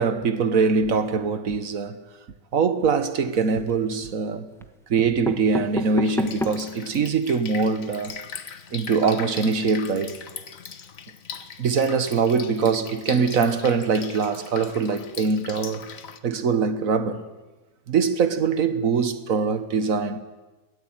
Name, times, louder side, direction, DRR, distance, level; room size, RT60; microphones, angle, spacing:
voice 1, 0.0-2.0 2.5-4.5 4.9-8.2 8.7-10.2 11.6-15.9 16.2-17.3 17.9-20.2, right 5 dB, 50° right, 1.6 m, -23 dB
sound 1, 3.2-3.9 4.6-4.7 5.0-6.8 7.3-7.4 7.6-7.7 8.0-8.1, equal, ahead, 1.0 m, -31 dB
Drip, 6.0-16.2, left 7 dB, 50° left, 1.4 m, -40 dB
22.5 x 18.0 x 9.0 m
omnidirectional pair, 2.0 m